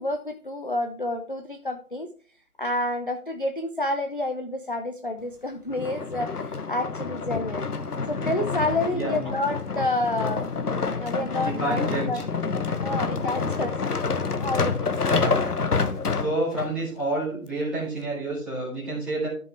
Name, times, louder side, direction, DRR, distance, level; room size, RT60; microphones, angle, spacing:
voice 1, 0.0-2.1 2.6-7.7 8.1-10.5 10.9-12.3 12.8-13.8 14.4-15.0, left 1 dB, 35° left, 5 dB, 0.5 m, -29 dB
sound 1, 5.7-16.7 17.3-17.4, left 4 dB, 75° left, 1.1 m, -28 dB
voice 2, 8.9-9.3 11.4-12.2 15.1-15.5 16.1-19.3, right 2 dB, ahead, -8 dB, 1.9 m, -29 dB
13.0 x 5.3 x 3.3 m, 0.42 s
figure-of-eight pair, 155°, 45 cm